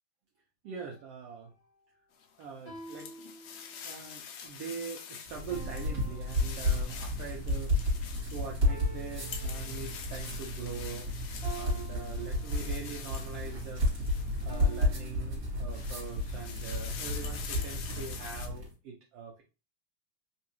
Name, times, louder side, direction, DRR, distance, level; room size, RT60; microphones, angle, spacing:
voice 1, 0.6-1.5 2.4-3.1 3.8-7.7 8.0-11.1 11.5-13.8 14.4-19.4, right 6 dB, 75° right, 1 dB, 1.4 m, -43 dB
sound 1, 0.7-1.1 2.7-4.1 5.5-7.3 8.7-10.3 11.4-13.0 14.5-16.1, right 3 dB, 30° left, 1.1 m, -49 dB
sound 2, 2.2-15.0 15.5-18.5, left 7 dB, 80° left, 1.5 m, -46 dB
sound 3, 5.3-18.7, left 1 dB, 35° right, 2.1 m, -32 dB
4.5 x 3.1 x 3.0 m, 0.31 s
omnidirectional pair, 3.5 m